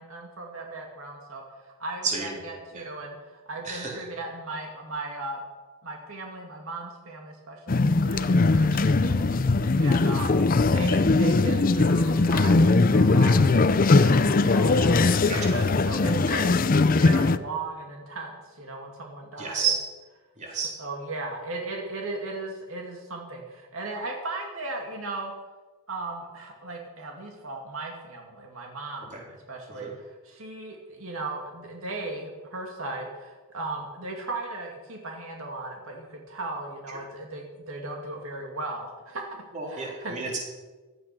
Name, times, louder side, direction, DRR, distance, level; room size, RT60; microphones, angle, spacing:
voice 1, 0.0-5.4 5.8-9.2 9.8-10.4 10.7-16.5 17.0-19.7 20.8-25.3 25.9-39.4 39.7-40.2, right 2 dB, 75° right, 1 dB, 2.5 m, -37 dB
voice 2, 2.0-2.4 2.7-2.8 3.6-3.9 8.6-8.7 9.2-9.4 15.3-15.5 16.3-16.4 19.4-19.8 20.4-20.7 29.1-29.2 29.8-29.9 36.9-37.0 39.5-40.4, right 5 dB, 35° right, -1 dB, 3.7 m, -31 dB
sound 1, 7.7-17.4, left 3 dB, 40° left, 0.5 m, -20 dB
16.5 x 12.0 x 6.0 m, 1.3 s
head